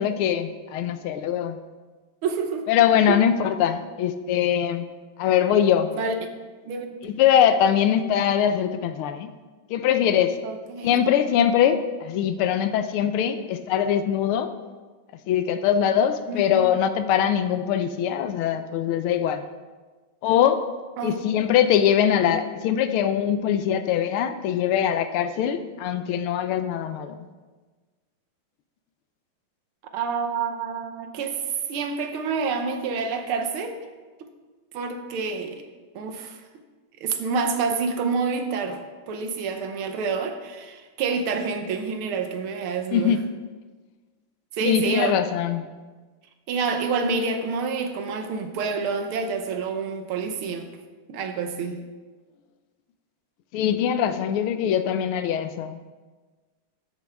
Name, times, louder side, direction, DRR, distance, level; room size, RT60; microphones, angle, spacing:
voice 1, 0.0-1.6 2.7-4.9 5.2-5.9 7.0-9.3 9.7-10.4 10.8-14.5 15.3-19.4 20.2-20.6 21.0-27.3 42.9-43.3 44.6-45.7 53.5-55.9, left 9 dB, 85° left, 10 dB, 1.5 m, -22 dB
voice 2, 2.2-2.7 3.1-3.2 6.0-6.2 6.6-7.0 10.4-11.0 16.3-16.6 21.0-21.2 29.9-31.4 31.7-33.8 34.2-34.3 34.7-35.7 36.0-36.4 37.0-43.1 44.5-45.1 46.5-50.7 51.1-51.8, right 4 dB, 80° right, 6 dB, 1.8 m, -28 dB
12.5 x 8.3 x 3.5 m, 1.4 s
omnidirectional pair, 2.3 m